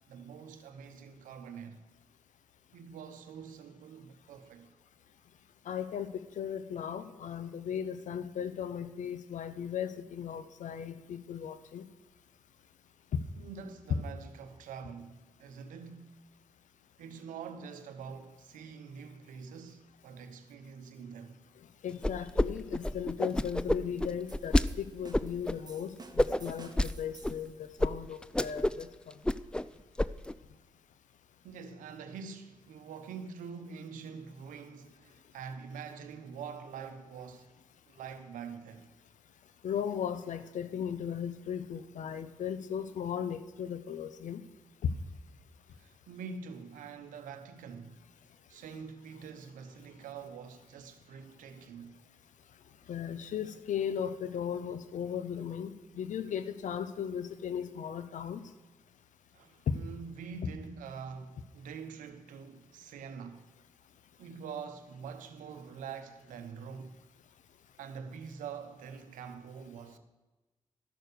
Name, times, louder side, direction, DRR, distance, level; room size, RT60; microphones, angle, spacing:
voice 1, 0.1-1.8 2.7-4.7 13.4-16.2 17.0-21.4 31.4-37.5 37.9-38.9 45.7-48.0 48.5-52.0 59.3-63.5 64.2-67.0 67.8-70.0, right 6 dB, 80° right, 0.9 m, -45 dB
voice 2, 5.7-11.8 13.1-13.2 21.8-29.2 39.6-44.4 44.8-44.9 52.9-58.4 59.7-59.8, left 8 dB, 70° left, 0.7 m, -36 dB
sound 1, 22.0-22.5 22.7-24.7 25.1-25.5 26.2-26.9 27.2-27.3 27.8-27.9 28.2-28.8 29.1-29.7 30.0-30.3, left 1 dB, 5° left, 0.4 m, -28 dB
sound 2, 24.3-27.6, right 3 dB, 30° right, 1.3 m, -53 dB
12.5 x 6.6 x 6.7 m
supercardioid pair, 40°, 13 cm